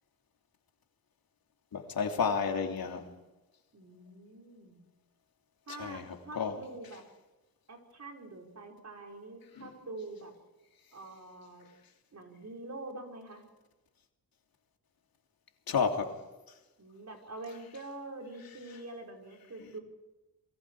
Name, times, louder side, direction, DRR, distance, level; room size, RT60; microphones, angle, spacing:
voice 1, 1.7-3.0 5.8-6.6 15.7-16.1, left 6 dB, 70° left, 3 dB, 3.1 m, -31 dB
voice 2, 3.7-4.8 5.7-7.0 7.7-10.3 10.9-11.7 12.1-13.4 16.8-19.8, right 2 dB, 50° right, 1 dB, 5.5 m, -45 dB
28.0 x 22.5 x 4.9 m, 1.1 s
cardioid pair, 75°, 36 cm